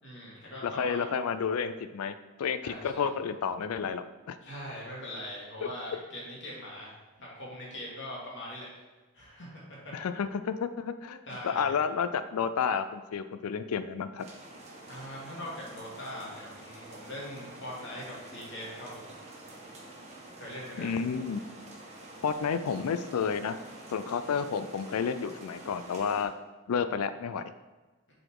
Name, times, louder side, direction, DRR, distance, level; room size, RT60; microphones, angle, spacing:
voice 1, 0.0-1.0 2.6-3.1 4.4-6.9 7.2-8.8 9.1-9.9 11.3-11.7 14.9-19.0 20.4-20.9, left 1 dB, 55° left, -5 dB, 2.4 m, -41 dB
voice 2, 0.6-4.4 9.9-14.3 20.8-21.4 22.2-23.6 23.9-26.3 26.7-27.5, left 6 dB, 85° left, 11 dB, 0.4 m, -31 dB
sound 1, 14.2-26.2, right 1 dB, 30° right, 1.3 m, -48 dB
7.7 x 4.2 x 4.7 m, 1.2 s
head